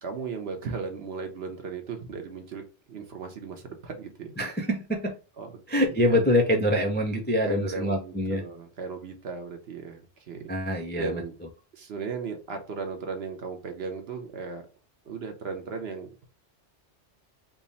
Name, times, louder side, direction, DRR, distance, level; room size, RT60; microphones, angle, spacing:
voice 1, 0.0-2.6 2.9-4.3 5.4-5.5 5.8-6.2 7.4-10.0 10.3-10.5 11.0-11.3 11.7-14.6 15.0-16.2, right 5 dB, 65° right, 5 dB, 1.0 m, -36 dB
voice 2, 4.4-5.1 5.7-8.4 10.5-11.2, left 1 dB, 15° left, 3 dB, 0.3 m, -25 dB
3.6 x 2.1 x 3.9 m, 0.34 s
omnidirectional pair, 1.2 m